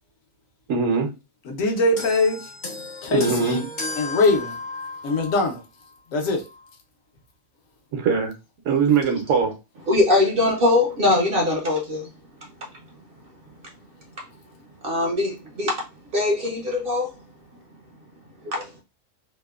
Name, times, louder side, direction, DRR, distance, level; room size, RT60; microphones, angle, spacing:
voice 1, 0.7-1.1 3.1-3.6 7.9-8.3 8.7-9.5, right 5 dB, 75° right, 1.0 m, -21 dB
voice 2, 1.4-2.5 3.0-3.7 4.0-4.6 5.0-5.6 6.1-6.4, left 2 dB, 75° left, 1.1 m, -22 dB
sound 1, 2.0-5.6 6.5-6.6, left 2 dB, 45° left, 0.6 m, -34 dB
voice 3, 9.9-12.1 12.4-12.5 14.8-15.8 16.1-17.1 18.4-18.7, left 2 dB, 60° right, 0.6 m, -21 dB
2.9 x 2.0 x 2.3 m
omnidirectional pair, 1.4 m